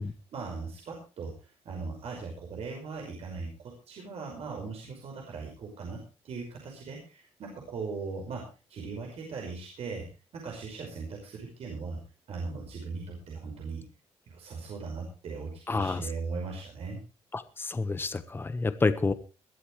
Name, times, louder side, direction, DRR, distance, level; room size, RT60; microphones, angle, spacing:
voice 1, 0.0-10.1 10.3-12.0 12.3-13.9 14.3-17.0, right 4 dB, 65° right, 0 dB, 5.4 m, -39 dB
voice 2, 15.7-16.0 17.3-19.1, left 3 dB, 20° left, 11 dB, 1.2 m, -28 dB
21.5 x 12.5 x 3.2 m, 0.33 s
cardioid pair, 125°, 11 cm